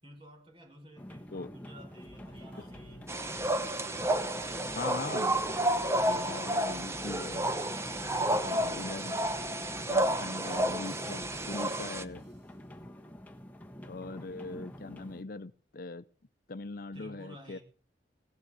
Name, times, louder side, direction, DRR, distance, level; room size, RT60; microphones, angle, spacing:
voice 1, 0.0-3.2 4.3-5.1 7.9-9.0 9.7-10.9 16.9-17.6, right 1 dB, 30° right, 2 dB, 6.2 m, -53 dB
sound 1, 1.0-15.2, equal, 10° left, 1.2 m, -47 dB
sound 2, 2.0-12.6, left 1 dB, 80° right, 8.0 m, -58 dB
sound 3, 3.1-12.0, right 1 dB, 15° right, 1.0 m, -31 dB
voice 2, 4.8-5.3 6.0-7.5 8.4-9.1 9.9-12.2 13.9-16.0 16.5-17.6, left 3 dB, 55° left, 13 dB, 0.7 m, -40 dB
18.0 x 7.6 x 8.2 m, 0.41 s
head